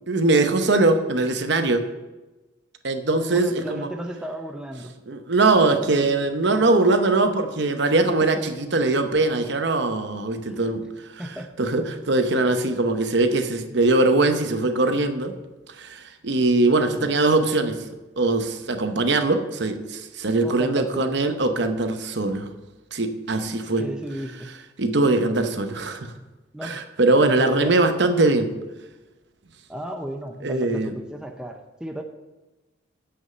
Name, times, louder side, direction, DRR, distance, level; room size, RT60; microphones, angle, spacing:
voice 1, 0.1-1.8 2.8-3.9 5.1-10.9 11.6-15.3 15.7-17.8 18.2-22.5 22.9-23.9 24.8-26.1 26.6-28.5 30.4-30.9, right 2 dB, 55° right, 7 dB, 0.8 m, -21 dB
voice 2, 3.3-4.9 8.0-8.1 10.5-10.6 11.2-11.5 16.9-17.2 20.4-21.2 23.8-24.5 26.5-26.8 27.2-27.7 29.7-32.0, right 1 dB, 5° right, 3 dB, 0.6 m, -34 dB
8.0 x 6.4 x 7.7 m, 1.1 s
head